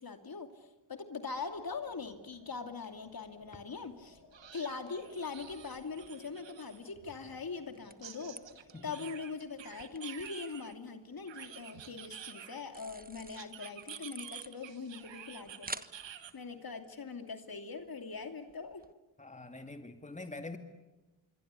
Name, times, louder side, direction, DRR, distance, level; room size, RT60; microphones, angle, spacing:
voice 1, 0.0-4.2 4.5-8.4 8.8-18.8, left 4 dB, 50° left, 6 dB, 2.7 m, -42 dB
sound 1, 1.3-9.9, left 4 dB, 70° left, 6.1 m, -62 dB
sound 2, 2.8-2.9 3.3-3.4 4.3-6.9 8.0-10.7 11.3-12.8 13.3-16.3, right 9 dB, 75° right, 1.6 m, -49 dB
sound 3, 4.8-18.9, right 3 dB, 20° right, 1.2 m, -53 dB
voice 2, 19.2-20.6, left 2 dB, 15° left, 6 dB, 2.3 m, -45 dB
26.0 x 23.0 x 8.3 m, 1.1 s
supercardioid pair, 45°, 45 cm